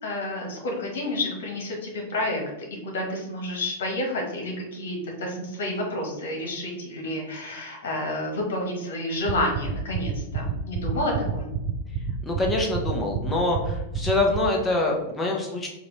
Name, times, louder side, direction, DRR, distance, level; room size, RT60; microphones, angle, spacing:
voice 1, 0.0-2.4 2.8-11.5, left 1 dB, 75° left, 1 dB, 1.5 m, -30 dB
sound 1, 9.3-14.4, right 8 dB, 45° right, 0.5 m, -27 dB
voice 2, 12.2-15.7, left 2 dB, 15° left, 0 dB, 1.1 m, -25 dB
4.9 x 2.6 x 3.3 m, 0.92 s
hypercardioid pair, 115°, 0 cm